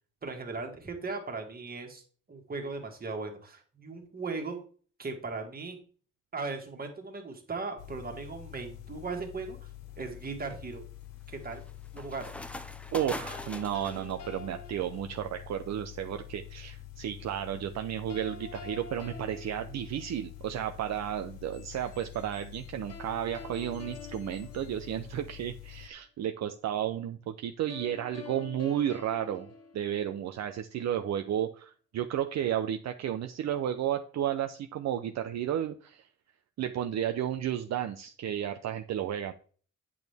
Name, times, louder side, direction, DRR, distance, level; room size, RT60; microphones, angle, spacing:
voice 1, 0.2-2.0 2.3-4.6 5.0-5.8 6.3-9.7 10.0-10.8 11.3-11.6 11.9-12.3, right 3 dB, 30° right, 4 dB, 1.8 m, -38 dB
sound 1, 7.8-25.9, left 14 dB, 75° left, 0.8 m, -47 dB
sound 2, 8.8-8.9 9.5-14.1, left 1 dB, 5° left, 0.5 m, -43 dB
voice 2, 12.9-29.5 29.7-36.0 36.6-39.3, right 10 dB, 60° right, 7 dB, 0.6 m, -33 dB
sound 3, 13.3-15.5 18.1-20.5 22.9-25.4 27.7-30.5, left 4 dB, 55° left, 1.4 m, -47 dB
8.7 x 6.2 x 3.5 m, 0.43 s
cardioid pair, 115°, 31 cm